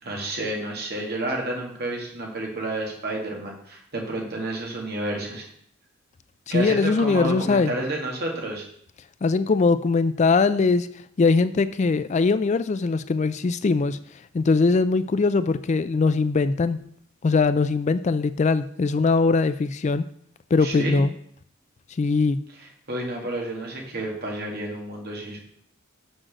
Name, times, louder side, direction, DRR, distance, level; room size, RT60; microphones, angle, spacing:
voice 1, 0.0-5.5 6.5-8.6 20.6-21.0 22.6-25.4, right 1 dB, 50° right, 0 dB, 2.2 m, -30 dB
voice 2, 6.5-7.7 9.2-10.9 11.2-14.0 14.3-16.8 17.2-20.0 20.5-21.1 22.0-22.4, left 4 dB, 35° left, 13 dB, 0.3 m, -21 dB
6.2 x 6.2 x 6.5 m, 0.66 s
head